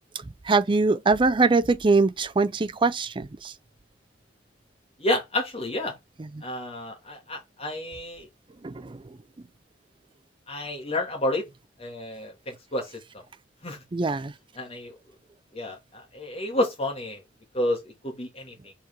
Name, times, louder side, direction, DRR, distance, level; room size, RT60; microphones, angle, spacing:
voice 1, 0.1-3.5 6.2-6.4 8.6-9.2 13.9-14.3, right 3 dB, 25° right, 0.5 m, -23 dB
voice 2, 5.0-6.0 6.4-8.3 10.5-11.4 11.8-13.2 13.6-13.8 14.6-14.9 15.5-17.2 17.5-18.7, left 1 dB, 35° left, 2.8 m, -30 dB
5.8 x 4.5 x 6.3 m
head